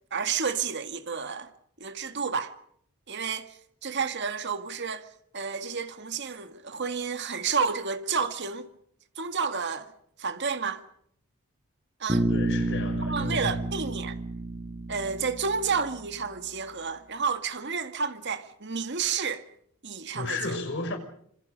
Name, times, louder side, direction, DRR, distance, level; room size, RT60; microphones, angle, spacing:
voice 1, 0.1-1.5 1.8-2.5 3.1-5.1 5.3-8.7 9.2-9.9 10.2-10.8 12.0-12.3 13.1-14.2 14.9-19.5 19.8-20.6, right 5 dB, 50° right, 1.9 m, -30 dB
Bass guitar, 12.1-16.2, right 2 dB, 25° right, 5.4 m, -30 dB
voice 2, 12.3-13.6 20.1-21.0, left 2 dB, 55° left, 5.9 m, -33 dB
27.0 x 26.5 x 5.4 m
head